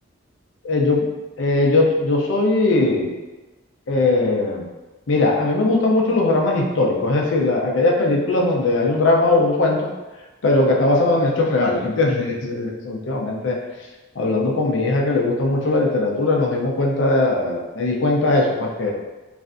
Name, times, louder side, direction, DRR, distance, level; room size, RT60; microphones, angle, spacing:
voice 1, 0.6-1.1 1.4-3.2 3.9-4.7 5.1-9.9 10.4-13.6 14.2-18.9, left 2 dB, 70° left, -1 dB, 0.5 m, -19 dB
3.2 x 2.5 x 2.5 m, 1.2 s
head